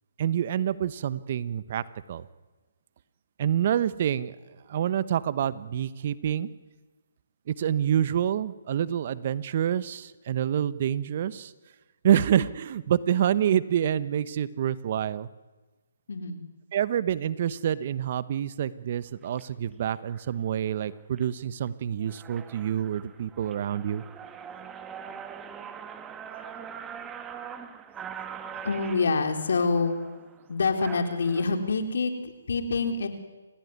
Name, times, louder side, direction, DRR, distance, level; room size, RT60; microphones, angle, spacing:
voice 1, 0.2-2.3 3.4-4.3 4.7-6.5 7.5-11.5 12.0-15.3 16.7-24.0, right 10 dB, 45° right, 16 dB, 1.1 m, -27 dB
voice 2, 16.1-16.5 28.6-30.0 30.5-33.1, left 4 dB, 65° left, 6 dB, 3.8 m, -26 dB
sound 1, 19.2-19.4 20.1-20.3 20.8-21.2 21.7-21.8 22.0-31.4, right 7 dB, 15° right, 1.5 m, -42 dB
29.5 x 16.0 x 9.6 m, 1.2 s
hypercardioid pair, 150°, 0 cm